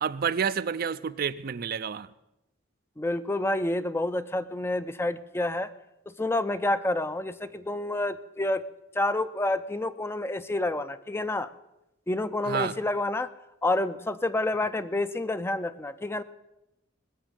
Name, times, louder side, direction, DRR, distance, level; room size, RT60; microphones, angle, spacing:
voice 1, 0.0-2.1 12.5-12.8, right 6 dB, 50° right, 0.4 m, -29 dB
voice 2, 3.0-5.7 6.1-8.6 8.9-11.5 12.1-13.3 13.6-16.2, left 2 dB, 10° left, 0.4 m, -28 dB
20.0 x 7.2 x 7.4 m
head